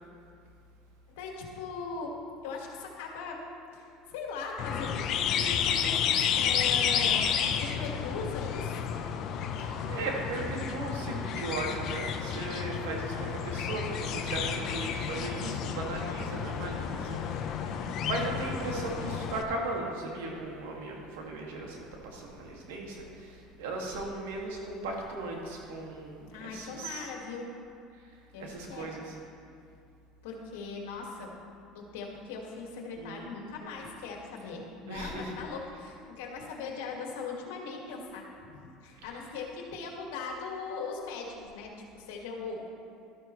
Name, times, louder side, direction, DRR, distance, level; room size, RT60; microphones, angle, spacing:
voice 1, 1.1-2.2 2.4-3.5 3.7-7.3 7.6-8.8 26.3-27.5 28.3-28.9 30.2-31.3 31.7-42.7, left 4 dB, 90° left, 0 dB, 1.9 m, -39 dB
sound 1, 4.6-19.4, left 8 dB, 55° left, 0.8 m, -31 dB
voice 2, 9.6-27.1 28.4-29.1 33.0-33.2 34.9-35.3, right 2 dB, 90° right, -1 dB, 2.1 m, -37 dB
12.5 x 12.5 x 3.2 m, 2.4 s
supercardioid pair, 110°, 0 cm